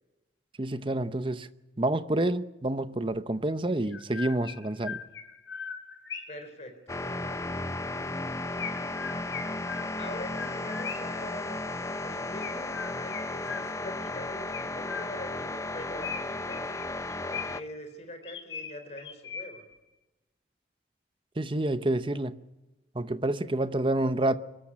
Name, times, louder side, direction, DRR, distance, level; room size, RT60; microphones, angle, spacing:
voice 1, 0.6-1.5 1.8-5.0 21.4-22.4 22.9-24.4, right 1 dB, 25° right, 0.8 m, -28 dB
Chirp tweet, 3.9-6.5 8.6-11.2 12.4-14.0 14.5-15.4 16.0-17.8 18.2-19.7, left 6 dB, 80° left, 4.6 m, -40 dB
voice 2, 6.3-7.5 10.0-11.6 12.0-16.9 17.3-19.6, left 1 dB, 35° left, 4.1 m, -43 dB
sound 1, 6.9-17.6, left 2 dB, 15° left, 0.6 m, -34 dB
24.0 x 13.5 x 10.0 m
head